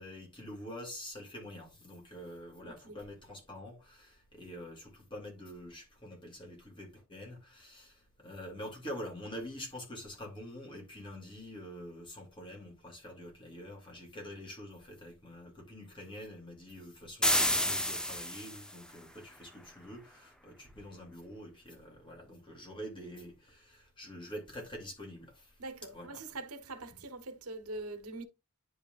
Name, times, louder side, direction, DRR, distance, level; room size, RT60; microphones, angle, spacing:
voice 1, 0.0-25.5 25.9-26.2 26.9-27.0, equal, 25° left, 2.6 m, -46 dB
voice 2, 2.6-3.0 25.6-28.2, right 2 dB, 85° right, 1.1 m, -43 dB
sound 1, 17.2-18.8, left 1 dB, 5° left, 0.6 m, -29 dB
10.0 x 4.9 x 2.4 m
head